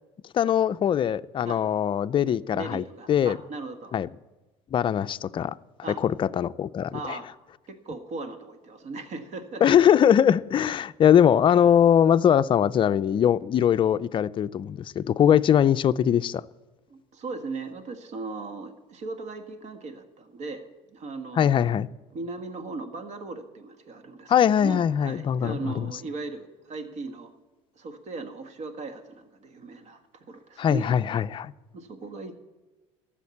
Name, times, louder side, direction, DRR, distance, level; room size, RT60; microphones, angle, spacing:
voice 1, 0.3-3.4 3.9-4.1 4.7-5.5 6.0-7.2 9.6-16.4 21.4-21.9 24.3-25.9 30.6-31.5, left 9 dB, 35° left, 0.4 m, -21 dB
voice 2, 2.2-3.9 5.8-6.0 6.9-7.3 7.7-9.6 16.9-21.7 22.1-24.3 24.6-27.3 27.7-30.0 30.3-30.9 31.7-32.3, right 3 dB, 55° right, 1.6 m, -38 dB
13.0 x 7.3 x 8.5 m
supercardioid pair, 95°, 14 cm